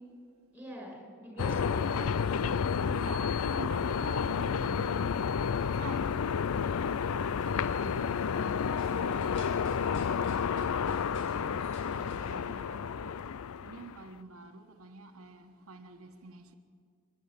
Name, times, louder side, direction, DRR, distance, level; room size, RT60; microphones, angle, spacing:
voice 1, 0.5-2.8 7.1-7.9, right 1 dB, 5° right, 6.8 m, -46 dB
sound 1, 1.4-14.0, left 6 dB, 85° left, 0.5 m, -31 dB
voice 2, 2.9-6.1 7.4-8.3 10.8-13.2 13.6-16.5, right 3 dB, 85° right, 1.2 m, -47 dB
sound 2, 7.0-13.1, left 1 dB, 60° left, 7.2 m, -53 dB
28.5 x 11.0 x 8.9 m
head